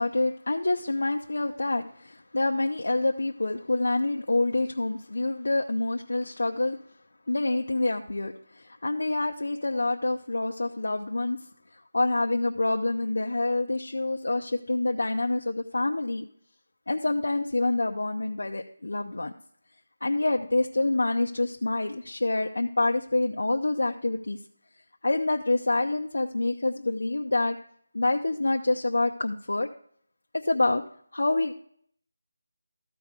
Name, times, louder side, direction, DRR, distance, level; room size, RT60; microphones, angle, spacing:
voice 1, 0.0-6.8 7.3-11.4 11.7-16.3 16.9-19.3 20.0-24.4 25.0-27.6 27.9-29.7 30.3-30.8 31.1-31.5, left 2 dB, 80° left, 2 dB, 0.6 m, -27 dB
13.5 x 4.8 x 5.1 m, 0.62 s
figure-of-eight pair, 180°, 0 cm